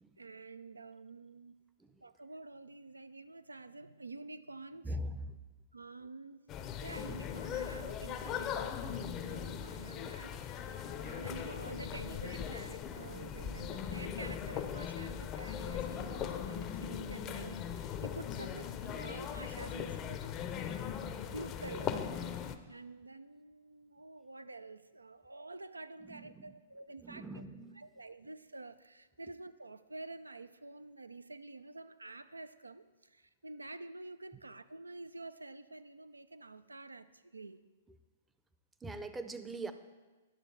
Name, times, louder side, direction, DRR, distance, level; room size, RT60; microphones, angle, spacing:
voice 1, 0.2-1.6 2.0-5.0 5.7-6.4 6.8-20.2 21.3-22.0 22.7-27.4 27.8-37.6, right 3 dB, 90° right, 13 dB, 0.4 m, -48 dB
voice 2, 4.8-5.4 20.6-20.7 26.0-26.6 27.0-27.8 38.8-39.7, right 1 dB, 10° right, 10 dB, 0.5 m, -42 dB
sound 1, 6.5-22.6, left 8 dB, 30° left, 0.5 m, -39 dB
10.5 x 6.6 x 4.6 m, 1.2 s
figure-of-eight pair, 110°, 0 cm